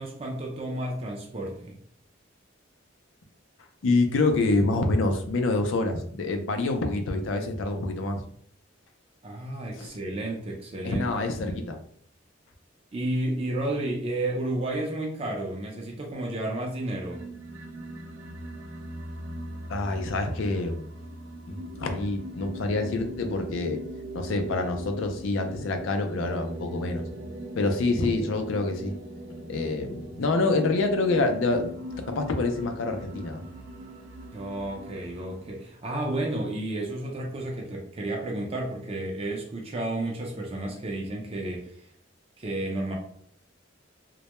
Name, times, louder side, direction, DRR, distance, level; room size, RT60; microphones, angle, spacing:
voice 1, 0.0-1.8 9.2-11.1 11.4-11.6 12.9-17.2 27.5-27.6 34.3-41.7 42.4-42.9, right 1 dB, 30° right, -1 dB, 0.4 m, -32 dB
voice 2, 3.8-8.2 9.8-9.9 10.8-11.8 19.7-20.8 21.5-23.8 24.1-27.0 27.6-28.9 29.5-31.7 32.1-33.4, left 2 dB, 80° left, 6 dB, 0.4 m, -26 dB
sound 1, 17.1-35.7, equal, 85° right, 0.5 m, -40 dB
2.1 x 2.1 x 2.9 m, 0.65 s
head